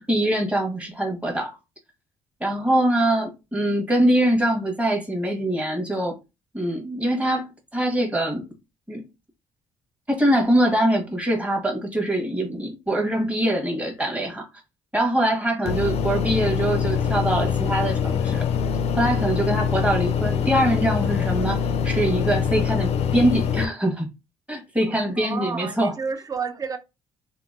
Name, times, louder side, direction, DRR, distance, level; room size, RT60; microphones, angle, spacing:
voice 1, 0.0-1.6 2.4-6.2 6.5-8.4 8.9-9.0 10.1-14.5 14.9-18.5 19.0-24.1 24.5-25.9, right 1 dB, 10° right, 1.2 m, -23 dB
sound 1, 15.7-23.7, left 7 dB, 60° left, 0.4 m, -24 dB
voice 2, 24.9-26.8, right 5 dB, 30° right, 0.5 m, -31 dB
2.8 x 2.5 x 2.5 m
supercardioid pair, 70°, 12 cm